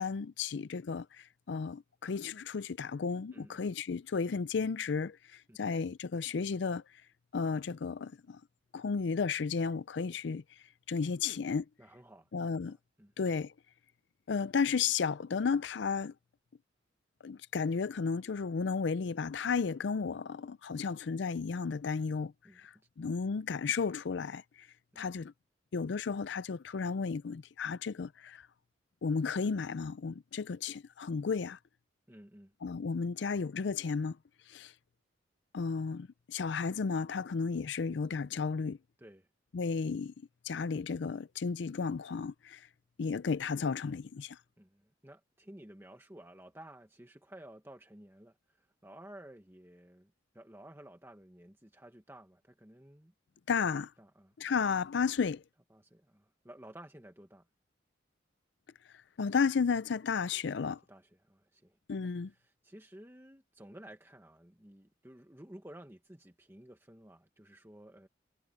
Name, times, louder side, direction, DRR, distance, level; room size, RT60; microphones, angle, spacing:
voice 1, 0.0-5.2 5.6-6.8 7.3-8.4 8.7-10.4 10.9-11.7 12.3-12.8 13.2-13.5 14.3-16.1 17.2-22.3 22.6-24.4 25.0-25.3 25.7-28.4 29.0-31.6 32.6-34.2 34.5-34.7 35.5-38.8 39.5-40.1 40.4-42.6 43.0-44.4 53.5-53.9 54.4-55.4 59.2-60.8 61.9-62.3, left 5 dB, 65° left, 0.4 m, -33 dB
voice 2, 11.8-12.3 13.0-13.1 22.4-22.6 24.9-25.0 32.1-32.5 39.0-39.3 44.6-53.1 54.0-54.3 55.7-57.5 60.9-61.8 62.3-68.1, right 1 dB, 10° right, 1.3 m, -53 dB
head